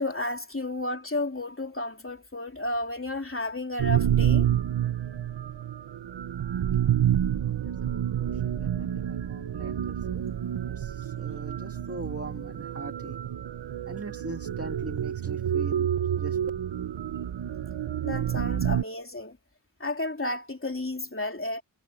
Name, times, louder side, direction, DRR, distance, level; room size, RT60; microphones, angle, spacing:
voice 1, 0.0-4.5 18.0-19.4 19.8-21.6, left 2 dB, 30° left, 3.3 m, -32 dB
sound 1, 3.8-18.8, right 10 dB, 75° right, 0.7 m, -28 dB
voice 2, 7.4-10.2 10.6-13.2 13.8-15.9 16.2-16.4, right 2 dB, 30° right, 1.9 m, -41 dB
wide cardioid pair, 60°, 45 cm